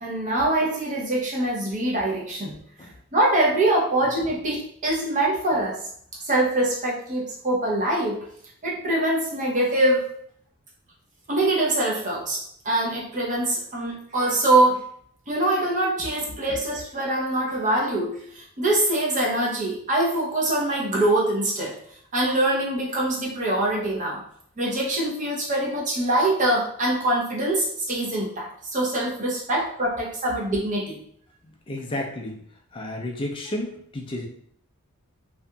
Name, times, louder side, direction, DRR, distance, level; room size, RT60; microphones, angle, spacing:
voice 1, 0.0-2.6 3.1-5.8 6.3-8.2 8.6-10.1 11.3-14.8 15.3-21.8 22.1-24.2 24.6-31.0, right 1 dB, 35° right, -4 dB, 0.7 m, -24 dB
voice 2, 31.7-32.4 32.7-34.3, left 1 dB, 25° left, 1 dB, 0.3 m, -31 dB
2.7 x 2.5 x 2.2 m, 0.65 s
head